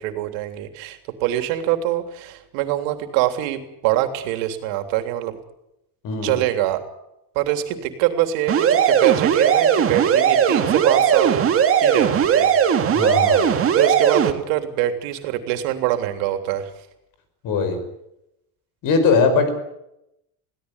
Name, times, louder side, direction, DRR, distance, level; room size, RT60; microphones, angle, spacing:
voice 1, 0.0-5.4 6.2-6.8 7.4-11.5 11.8-12.5 13.3-16.7, right 13 dB, 80° right, 7 dB, 3.5 m, -24 dB
voice 2, 6.0-6.4 12.9-13.5 17.4-17.8 18.8-19.5, left 4 dB, 45° left, 8 dB, 5.8 m, -20 dB
sound 1, 8.5-14.3, right 8 dB, 30° right, 2.0 m, -18 dB
22.5 x 17.0 x 9.8 m, 0.84 s
cardioid pair, 170°, 45 cm